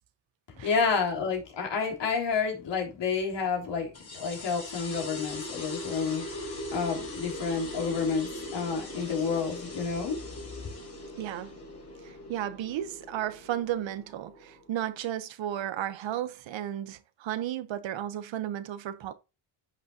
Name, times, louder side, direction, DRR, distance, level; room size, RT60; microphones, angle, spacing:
voice 1, 0.6-10.2, left 5 dB, 60° left, 3.6 m, -30 dB
sound 1, 3.9-15.0, left 1 dB, 30° left, 4.9 m, -40 dB
voice 2, 11.2-11.6 12.0-19.1, right 11 dB, 65° right, 1.0 m, -34 dB
10.5 x 6.3 x 2.8 m
cardioid pair, 125°, 49 cm